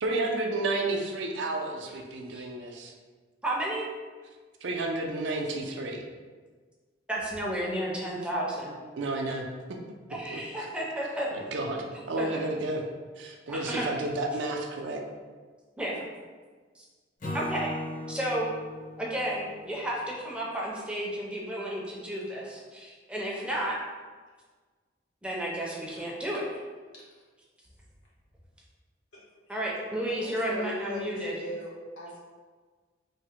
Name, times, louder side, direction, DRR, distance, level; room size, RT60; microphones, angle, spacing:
voice 1, 0.0-2.9 4.6-6.0 9.0-9.4 10.3-10.4 11.3-12.8 13.2-15.0, right 2 dB, 65° right, 2 dB, 0.4 m, -31 dB
voice 2, 3.4-3.8 7.1-8.7 10.1-11.3 11.9-12.3 13.5-13.9 15.8-16.0 17.3-17.7 18.1-18.5 19.0-23.7 25.2-26.5 29.5-31.4, right 1 dB, 5° right, -4 dB, 0.4 m, -32 dB
Acoustic guitar / Strum, 17.2-20.5, left 1 dB, 45° left, 0.6 m, -39 dB
voice 3, 30.1-32.2, left 1 dB, 90° left, -5 dB, 1.0 m, -40 dB
3.3 x 2.0 x 2.8 m, 1.4 s
head